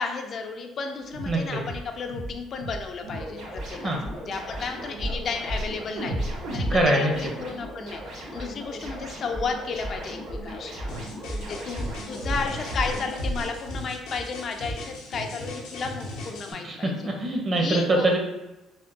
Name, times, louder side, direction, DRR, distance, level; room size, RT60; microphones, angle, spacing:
voice 1, 0.0-6.2 6.5-10.8 11.4-17.1 17.5-18.1, left 4 dB, 50° left, 4 dB, 0.3 m, -33 dB
sound 1, 1.1-1.4 1.6-1.8 2.1-2.3 2.6-2.8 3.1-3.3 3.5-3.7 4.0-4.1 4.5-4.6 5.0-5.2 5.5-5.7 6.0-8.0 8.4-8.5 8.8-8.9 9.3-9.5 9.8-10.0 10.3-10.4 10.8-10.9 11.3-11.5 11.7-11.9 12.2-12.5 12.7-12.9 13.2-13.4 13.7-13.8 14.2-14.3 14.6-14.7, right 1 dB, 85° right, 0.9 m, -31 dB
voice 2, 1.3-1.6 3.8-4.0 6.7-7.3 16.6-18.2, right 1 dB, 40° right, 1 dB, 0.7 m, -24 dB
sound 2, 3.0-13.2, equal, 65° right, 1.4 m, -39 dB
sound 3, 10.9-16.5, left 1 dB, 85° left, 0.6 m, -39 dB
3.3 x 2.2 x 2.6 m, 1.0 s
cardioid pair, 95°, 0 cm